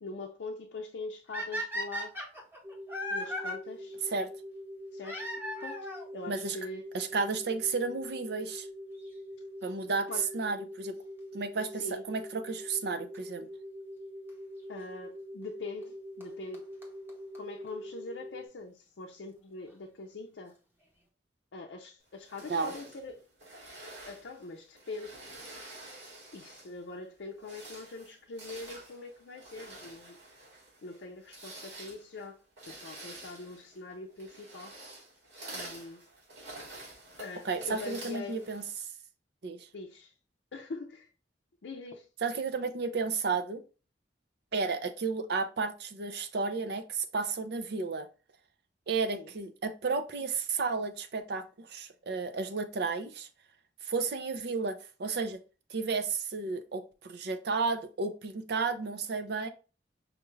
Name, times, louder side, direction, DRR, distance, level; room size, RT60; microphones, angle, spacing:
voice 1, 0.0-2.2 3.1-4.0 4.9-5.3 5.6-5.9 6.1-6.9 10.1-10.3 11.7-12.0 14.7-16.7 17.3-20.6 21.5-23.2 24.0-25.2 26.3-30.2 30.8-34.8 35.5-36.0 37.2-38.5 39.7-40.1 40.5-41.1 41.6-42.1 49.1-49.3, left 3 dB, 75° left, 0.5 m, -43 dB
sound 1, 1.3-3.5 5.0-6.1 7.0-7.1 7.8-7.9 8.1-8.2 10.1-10.3 13.1-13.2 14.3-14.4 15.8-15.9 16.2-16.3 16.5-16.6 16.8-16.9 17.1-17.2 17.3-17.4 17.7-17.8, equal, 10° right, 0.9 m, -36 dB
sound 2, 2.6-18.5, equal, 30° right, 1.2 m, -44 dB
voice 2, 6.9-8.7 9.6-10.1 10.3-10.9 11.3-13.5 22.5-22.7 37.4-38.6 39.4-39.7 42.2-43.6 44.5-48.1 48.9-53.3 53.8-55.4 55.7-59.5, right 4 dB, 60° right, 0.5 m, -32 dB
sound 3, 22.2-26.8 27.3-38.8, right 2 dB, 80° right, 2.0 m, -48 dB
5.1 x 2.3 x 3.1 m
head